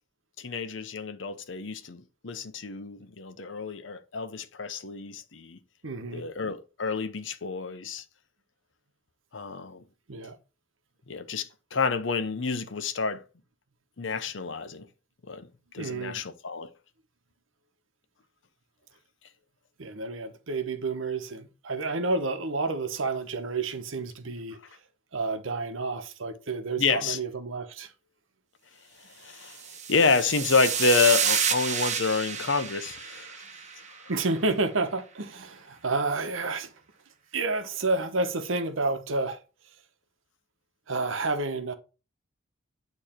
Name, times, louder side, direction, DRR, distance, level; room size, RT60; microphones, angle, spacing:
voice 1, 0.4-5.6 6.1-8.0 9.3-9.8 11.1-13.2 14.0-14.9 15.3-15.5 15.7-16.7 26.8-27.2 29.0-29.6 29.9-33.4 34.0-34.1, left 4 dB, 70° left, 0.8 m, -28 dB
voice 2, 5.8-6.3 10.1-10.4 15.8-16.2 19.8-24.6 25.1-27.9 34.1-36.7 37.3-39.4 40.9-41.7, right 3 dB, 85° right, 1.0 m, -30 dB
sound 1, 29.5-34.0, right 7 dB, 35° right, 1.0 m, -30 dB
8.8 x 3.2 x 4.4 m
head